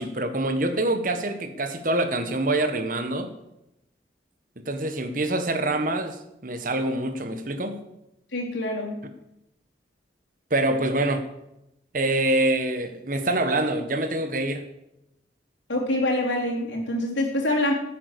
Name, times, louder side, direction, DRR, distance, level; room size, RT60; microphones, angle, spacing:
voice 1, 0.0-3.3 4.6-7.8 10.5-11.3 11.9-14.6, right 2 dB, 45° right, 8 dB, 1.4 m, -25 dB
voice 2, 8.3-9.0 15.7-17.7, left 1 dB, 90° left, -1 dB, 3.8 m, -25 dB
15.0 x 8.4 x 6.9 m, 0.86 s
head